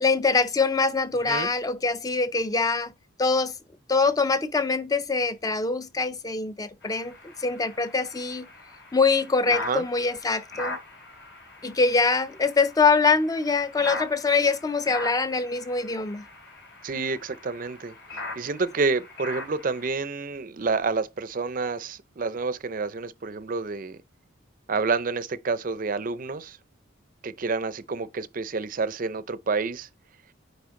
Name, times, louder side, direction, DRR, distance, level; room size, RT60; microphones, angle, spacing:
voice 1, 0.0-2.9 3.2-3.6 3.9-7.1 7.4-8.5 8.9-10.8 11.6-16.2, left 4 dB, 15° left, 0.4 m, -24 dB
sound 1, 6.8-19.9, left 2 dB, 55° left, 3.1 m, -40 dB
voice 2, 9.5-9.8 16.8-17.9 18.4-24.0 24.7-26.6 27.2-29.9, right 4 dB, 40° right, 0.5 m, -29 dB
9.4 x 3.4 x 3.7 m
head